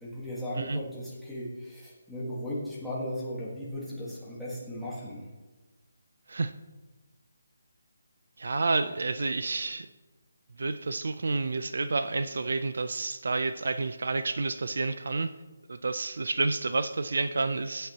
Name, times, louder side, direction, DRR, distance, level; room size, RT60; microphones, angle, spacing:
voice 1, 0.0-5.2, equal, ahead, -10 dB, 1.6 m, -36 dB
voice 2, 8.4-9.9 10.6-15.3 15.7-17.9, right 3 dB, 60° right, 11 dB, 0.5 m, -29 dB
15.0 x 9.1 x 2.9 m, 1.2 s
hypercardioid pair, 175°, 0 cm